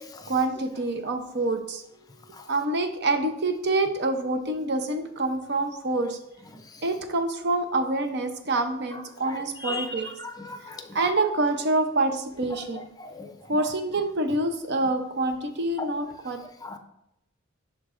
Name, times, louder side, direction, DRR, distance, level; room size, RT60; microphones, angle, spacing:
voice 1, 0.3-1.8 2.5-6.2 6.8-10.2 10.6-12.9 13.5-16.4, right 2 dB, 55° right, 7 dB, 0.7 m, -26 dB
voice 2, 10.2-10.8 13.0-13.3 16.6-16.8, left 3 dB, 20° left, 6 dB, 0.5 m, -35 dB
11.0 x 3.9 x 2.5 m, 0.82 s
head